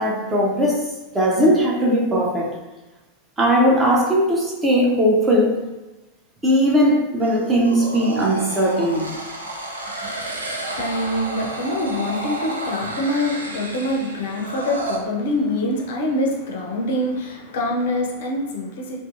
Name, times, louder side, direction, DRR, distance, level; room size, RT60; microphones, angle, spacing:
voice 1, 0.0-2.6 3.4-5.6 6.4-9.1, equal, 15° right, -3 dB, 0.6 m, -19 dB
sound 1, 7.2-15.0, right 2 dB, 80° right, 0.4 m, -31 dB
voice 2, 10.0-19.0, left 1 dB, 55° left, 0 dB, 0.4 m, -25 dB
2.6 x 2.5 x 2.4 m, 1.1 s
figure-of-eight pair, 90°, 0 cm